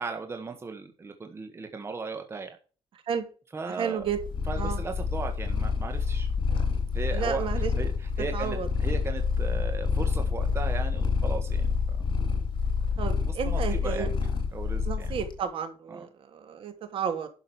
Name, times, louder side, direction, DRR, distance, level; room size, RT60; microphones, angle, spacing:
voice 1, 0.0-2.6 3.5-4.1 4.5-6.3 6.9-12.0 13.2-14.1 14.5-15.2 15.9-16.1, right 4 dB, 25° right, 5 dB, 1.5 m, -37 dB
voice 2, 3.7-4.2 4.6-4.8 7.1-7.7 8.3-8.7 13.0-14.1 14.8-17.3, right 7 dB, 65° right, 7 dB, 2.8 m, -32 dB
Purr, 4.1-15.4, left 5 dB, 55° left, 3.6 m, -28 dB
11.5 x 6.4 x 6.2 m, 0.36 s
wide cardioid pair, 155°, 10 cm